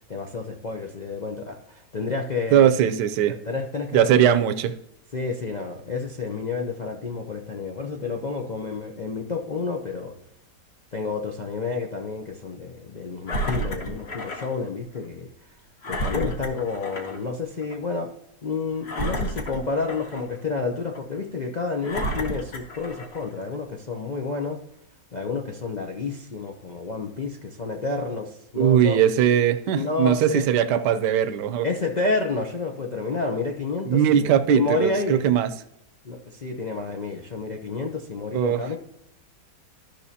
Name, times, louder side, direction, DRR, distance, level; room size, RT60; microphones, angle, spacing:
voice 1, 0.1-2.7 3.5-4.3 5.1-10.1 10.9-15.3 15.9-18.1 18.4-24.6 25.1-29.0 29.8-30.4 31.6-35.2 36.0-38.8, left 4 dB, 70° left, 1 dB, 0.4 m, -30 dB
voice 2, 2.5-3.3 3.9-4.7 28.6-31.7 33.9-35.5 38.3-38.6, right 9 dB, 75° right, 10 dB, 1.2 m, -20 dB
Engine, 13.3-14.5 15.0-15.1 15.8-17.2 17.6-17.8 18.8-20.4 20.9-21.0 21.8-23.3 24.0-24.1, equal, 40° left, 1.2 m, -31 dB
13.0 x 6.0 x 2.8 m, 0.82 s
omnidirectional pair, 1.9 m